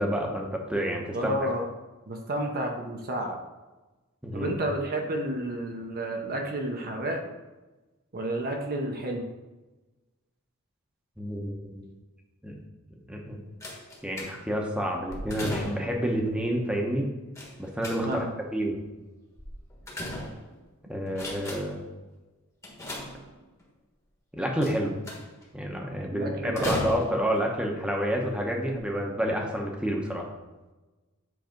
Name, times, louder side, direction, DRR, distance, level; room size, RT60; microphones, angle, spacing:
voice 1, 0.0-1.3 4.2-4.5 11.2-11.8 12.4-12.6 13.1-13.4 14.0-17.1 17.6-18.2 18.5-18.8 20.9-21.8 24.3-24.9 25.5-30.3, equal, 5° right, 0 dB, 1.0 m, -29 dB
voice 2, 1.1-1.7 2.1-3.4 4.3-7.2 8.1-9.3 18.0-18.3 26.1-26.7, right 1 dB, 40° right, 2 dB, 0.9 m, -31 dB
sound 1, 13.6-14.6 15.1-16.0 17.4-18.4 19.4-20.7 21.1-21.9 22.6-23.6 24.6-25.4 26.6-27.4 28.2-28.3 28.7-28.8, left 1 dB, 15° left, 1.3 m, -37 dB
7.8 x 3.4 x 5.2 m, 1.2 s
head